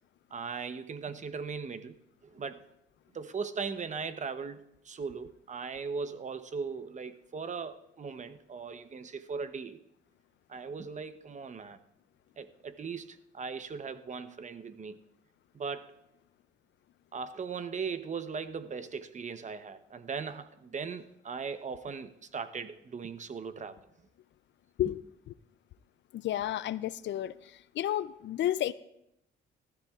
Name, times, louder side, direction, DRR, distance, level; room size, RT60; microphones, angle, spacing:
voice 1, 0.3-2.0 2.2-2.7 3.1-9.8 10.5-11.8 12.4-15.0 15.5-15.9 17.1-23.9 24.8-24.9, right 5 dB, 35° right, 10 dB, 0.8 m, -38 dB
voice 2, 26.1-27.3 27.7-28.7, left 12 dB, 65° left, 17 dB, 0.5 m, -31 dB
19.0 x 13.0 x 2.4 m, 0.81 s
cardioid pair, 90°, 20 cm